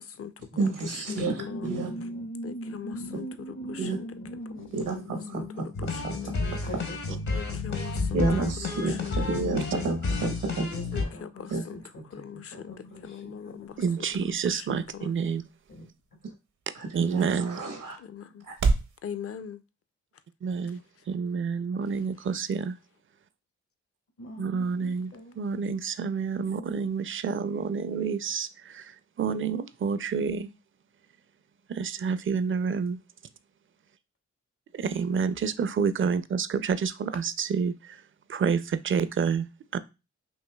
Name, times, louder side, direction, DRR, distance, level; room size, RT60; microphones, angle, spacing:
voice 1, 0.0-0.3 0.9-1.7 2.4-3.3 3.7-4.1 5.3-6.4 7.4-8.2 8.7-9.9 10.9-11.8 12.1-12.7 13.0-13.7 15.0-15.1 18.0-18.4 19.0-19.6, left 8 dB, 45° left, 12 dB, 0.5 m, -41 dB
voice 2, 0.6-1.9 3.8-4.0 4.7-4.9 5.3-5.4 6.0-6.1 8.1-10.7 11.5-11.6 16.7-18.0, right 3 dB, 85° right, 3 dB, 1.1 m, -29 dB
voice 3, 1.1-5.7 6.2-7.8 8.7-8.9 10.7-13.9 15.7-15.9 16.2-16.4 24.2-25.4 27.3-27.6, equal, 75° left, 3 dB, 1.5 m, -41 dB
sound 1, 5.7-11.0, left 3 dB, 60° left, 1.1 m, -31 dB
sound 2, 12.7-19.0, right 4 dB, 65° right, 0.7 m, -35 dB
voice 4, 13.8-15.4 16.9-17.6 20.4-20.8 21.1-22.8 24.4-30.5 31.7-33.0 34.7-38.0 38.3-39.5 39.7-39.8, right 6 dB, 40° right, 14 dB, 0.4 m, -28 dB
5.3 x 2.7 x 2.3 m, 0.28 s
supercardioid pair, 40°, 32 cm